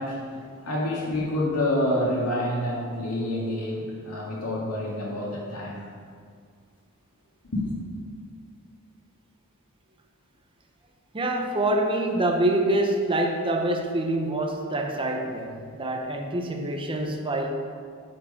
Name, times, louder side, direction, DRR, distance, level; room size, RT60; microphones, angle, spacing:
voice 1, 0.0-5.9 7.4-7.7, left 1 dB, 85° left, -4 dB, 2.1 m, -28 dB
voice 2, 11.1-17.5, right 1 dB, 25° right, 3 dB, 0.7 m, -26 dB
9.6 x 4.8 x 5.1 m, 2.1 s
head